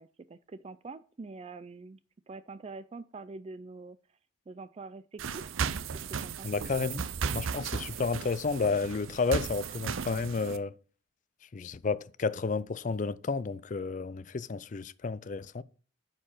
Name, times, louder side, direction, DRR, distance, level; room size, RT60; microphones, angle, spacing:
voice 1, 0.0-2.0 2.3-4.0 4.5-5.6 5.9-6.5, right 3 dB, 30° right, 0.3 m, -45 dB
sound 1, 5.2-10.6, right 6 dB, 90° right, 0.6 m, -35 dB
voice 2, 6.4-10.8 11.5-15.6, left 4 dB, 40° left, 0.4 m, -31 dB
9.5 x 4.6 x 5.6 m
head